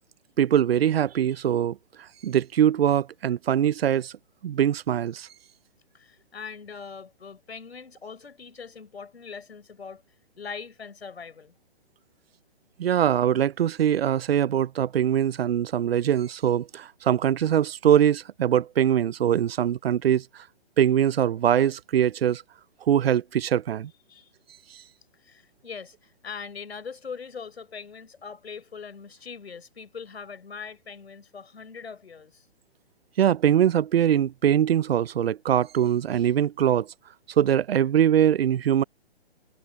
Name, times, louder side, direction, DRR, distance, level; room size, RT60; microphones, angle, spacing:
voice 1, 0.4-4.1 4.4-5.3 12.8-20.4 20.8-22.4 22.9-23.9 24.7-24.8 33.2-36.9 37.4-38.8, right 10 dB, 70° right, 0.7 m, -22 dB
voice 2, 5.9-10.0 10.4-11.5 24.1-24.3 25.2-32.5, left 5 dB, 85° left, 5.4 m, -41 dB
hypercardioid pair, 145°, 31 cm